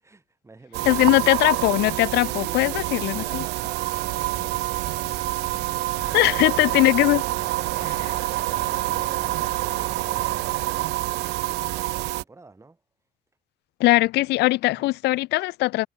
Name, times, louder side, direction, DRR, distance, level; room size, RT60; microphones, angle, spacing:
voice 1, 0.0-1.4 2.1-5.7 6.1-6.9 8.6-12.8 14.7-14.9, right 3 dB, 15° right, 3.8 m, -49 dB
sound 1, 0.7-12.2, right 20 dB, 80° right, 0.6 m, -27 dB
voice 2, 0.8-3.4 6.1-7.2 13.8-15.9, left 19 dB, 80° left, 0.7 m, -20 dB
sound 2, 3.9-10.6, left 7 dB, 40° left, 3.9 m, -47 dB
cardioid pair, 110°, 17 cm